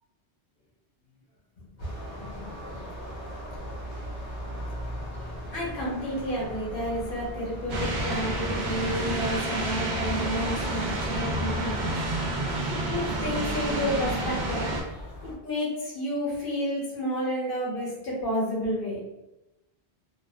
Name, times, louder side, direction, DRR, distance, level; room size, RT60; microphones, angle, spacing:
voice 1, 1.8-2.8 5.5-11.9 12.9-14.7 15.2-19.0, equal, 55° left, -5 dB, 0.9 m, -31 dB
sound 1, 1.8-15.4, equal, 15° left, 0.7 m, -40 dB
sound 2, 7.7-14.8, right 1 dB, 55° right, 0.5 m, -29 dB
2.6 x 2.2 x 2.2 m, 0.95 s
omnidirectional pair, 1.1 m